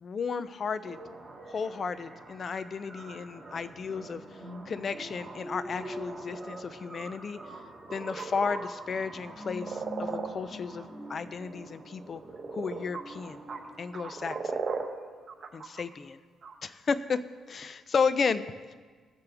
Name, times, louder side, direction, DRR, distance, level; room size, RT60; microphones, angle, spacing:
voice 1, 0.0-1.0 1.5-4.2 4.7-7.4 7.9-12.2 12.5-13.4 13.8-14.6 15.5-16.2 16.6-18.7, left 5 dB, 45° left, 14 dB, 0.5 m, -33 dB
sound 1, 0.8-14.8, right 1 dB, 15° right, 2.3 m, -44 dB
sound 2, 7.7-8.5 9.5-10.3 12.1-13.0 13.5-13.6 13.9-14.9 15.3-15.8 16.4-16.6, right 5 dB, 45° right, 1.4 m, -35 dB
19.5 x 6.9 x 3.5 m, 1.5 s
cardioid pair, 90°, 0 cm